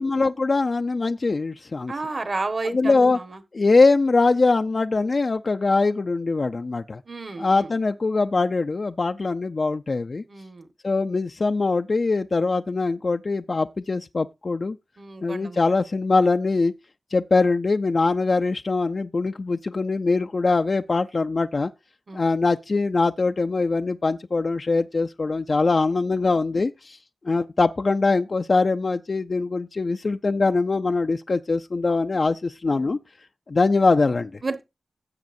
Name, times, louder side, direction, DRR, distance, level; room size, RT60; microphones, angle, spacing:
voice 1, 0.0-1.9 2.6-3.2 3.5-7.0 7.4-10.2 10.8-14.8 15.2-16.7 17.1-21.7 22.1-27.0 27.2-33.0 33.5-34.3, left 3 dB, 55° left, 0.5 m, -22 dB
voice 2, 1.9-3.4 7.1-7.7 10.3-10.7 15.0-15.6 22.1-22.2 34.4-34.6, right 3 dB, 55° right, 1.5 m, -31 dB
16.5 x 7.3 x 2.6 m
cardioid pair, 45°, 0 cm